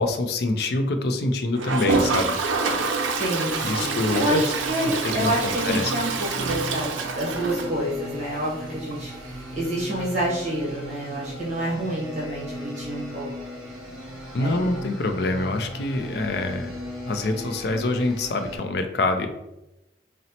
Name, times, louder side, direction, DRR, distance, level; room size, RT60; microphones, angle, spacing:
voice 1, 0.0-2.4 3.6-4.4 5.0-5.8 14.3-16.7 17.1-19.3, left 2 dB, 55° left, 6 dB, 0.4 m, -25 dB
Toilet flush, 1.5-8.3 8.6-8.7 8.9-9.0 9.2-9.3 11.9-12.0 13.3-13.4, right 4 dB, 85° right, 0.4 m, -27 dB
voice 2, 3.2-13.3 14.4-14.7, right 1 dB, 35° right, -5 dB, 0.9 m, -28 dB
sound 1, 3.4-18.6, equal, 5° left, 1.2 m, -37 dB
4.0 x 2.0 x 2.8 m, 0.90 s
head